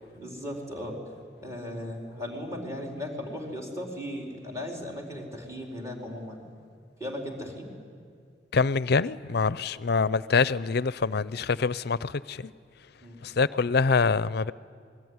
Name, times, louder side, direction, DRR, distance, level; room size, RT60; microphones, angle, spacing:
voice 1, 0.1-1.0 1.4-6.4 7.0-7.7 13.0-13.2, left 1 dB, 15° right, 4.3 m, -37 dB
voice 2, 8.5-12.5 13.2-14.5, left 4 dB, 60° left, 0.6 m, -25 dB
26.5 x 20.5 x 9.7 m
head